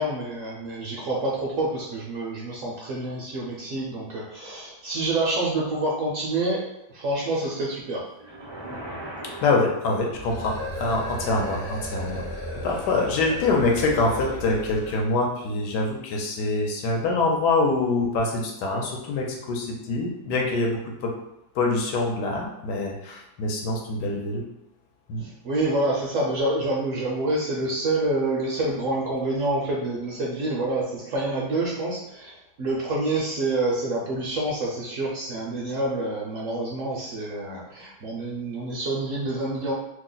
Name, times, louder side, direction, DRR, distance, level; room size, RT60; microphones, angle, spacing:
voice 1, 0.0-6.6 6.9-8.0 25.2-32.3 32.6-39.7, right 2 dB, 65° right, -4 dB, 0.8 m, -27 dB
sound 1, 8.2-10.5, right 1 dB, 30° right, 0.4 m, -39 dB
voice 2, 9.2-12.2 12.6-21.1 21.5-24.4 25.1-25.3, left 3 dB, 75° left, 0 dB, 1.2 m, -25 dB
sound 2, 10.1-15.1, left 1 dB, 45° left, 0.8 m, -34 dB
3.0 x 2.1 x 3.8 m, 0.87 s
omnidirectional pair, 1.8 m